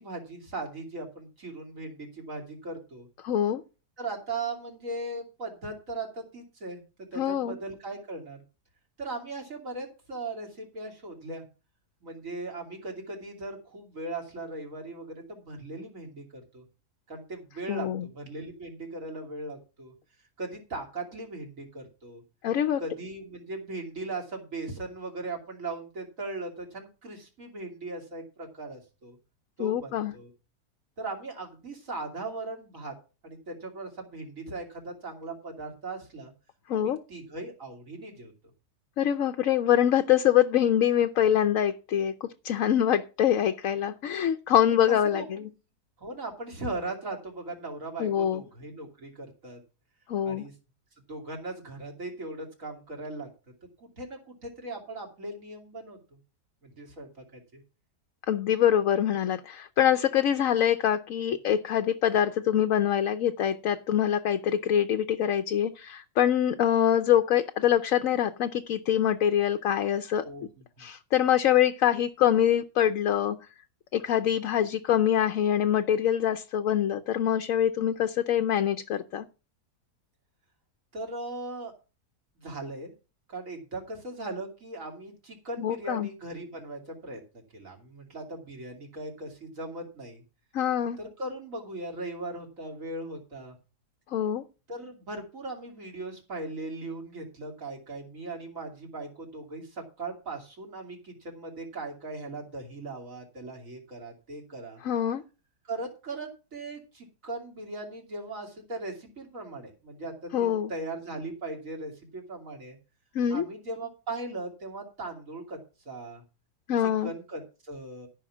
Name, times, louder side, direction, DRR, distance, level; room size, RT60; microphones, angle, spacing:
voice 1, 0.0-3.1 4.0-8.4 9.0-11.4 12.0-16.6 17.1-19.9 20.4-22.2 22.8-29.2 29.6-30.3 31.0-32.9 33.2-36.3 36.7-38.3 44.9-45.5 46.0-49.6 50.2-50.5 51.1-53.3 53.8-56.2 56.6-57.6 70.2-70.9 80.9-81.7 82.4-82.9 83.3-90.2 91.0-93.6 94.7-104.8 105.6-112.8 113.3-115.6 115.8-116.2 116.8-118.1, right 2 dB, 55° right, 3.2 m, -38 dB
voice 2, 3.2-3.6 7.2-7.6 17.7-18.0 22.4-22.8 29.6-30.1 36.7-37.0 39.0-42.1 42.4-45.2 48.0-48.4 50.1-50.4 58.3-70.2 70.8-73.4 73.9-79.2 85.6-86.1 90.5-91.0 94.1-94.4 104.8-105.2 110.3-110.7 113.1-113.4 116.7-117.1, left 10 dB, 65° left, 1.0 m, -24 dB
13.5 x 5.8 x 6.1 m
omnidirectional pair, 1.7 m